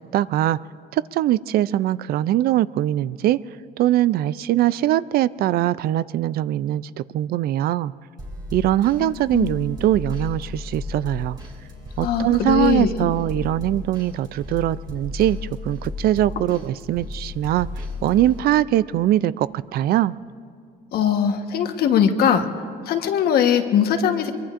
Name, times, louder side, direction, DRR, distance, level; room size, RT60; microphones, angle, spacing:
voice 1, 0.1-0.6 0.9-3.4 3.8-7.9 8.5-11.4 12.0-17.7 18.0-20.1, right 13 dB, 65° right, 18 dB, 0.4 m, -22 dB
sound 1, 8.2-18.4, left 2 dB, 25° right, 2.4 m, -34 dB
voice 2, 9.0-9.5 12.0-12.9 16.4-16.5 20.9-22.5 22.9-24.3, left 8 dB, 70° left, 6 dB, 1.3 m, -20 dB
23.5 x 23.0 x 2.5 m, 2.3 s
cardioid pair, 110°, 17 cm